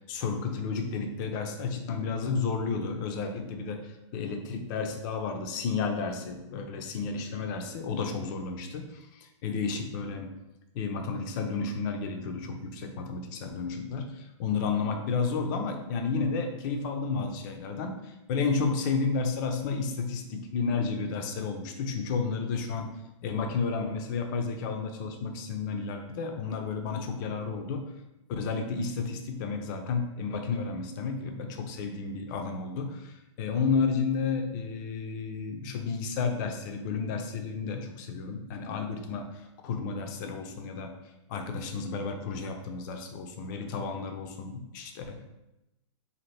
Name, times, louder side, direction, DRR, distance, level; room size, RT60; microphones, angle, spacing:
voice 1, 0.1-10.3 10.7-22.9 23.2-27.9 28.3-41.0 41.3-45.2, left 5 dB, 40° left, 5 dB, 0.4 m, -32 dB
2.7 x 2.6 x 3.2 m, 0.94 s
hypercardioid pair, 135°, 16 cm